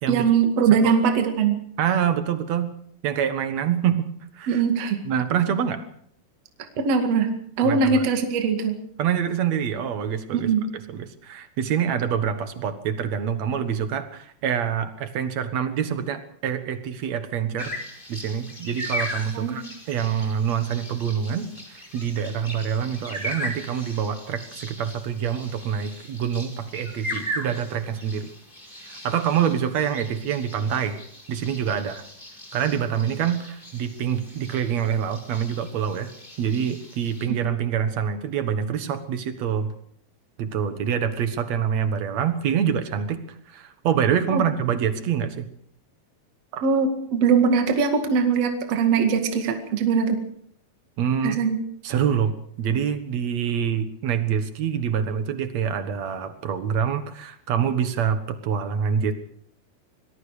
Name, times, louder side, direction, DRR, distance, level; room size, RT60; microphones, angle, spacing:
voice 1, 0.1-1.6 4.5-5.0 6.8-8.8 10.3-10.6 19.3-19.6 44.3-44.4 46.5-50.2 51.2-51.6, right 5 dB, 45° right, 5 dB, 2.7 m, -21 dB
voice 2, 1.8-2.7 3.0-4.1 4.3-4.6 5.1-5.8 7.6-8.0 9.0-10.5 10.9-17.7 18.1-28.3 28.8-31.0 31.3-32.0 32.5-36.1 36.4-39.7 40.4-43.2 43.5-45.5 51.0-51.4 51.8-59.1, right 8 dB, 60° right, 9 dB, 1.8 m, -26 dB
sound 1, 17.6-37.3, equal, 10° left, 4.7 m, -38 dB
25.5 x 20.5 x 5.0 m, 0.67 s
omnidirectional pair, 4.9 m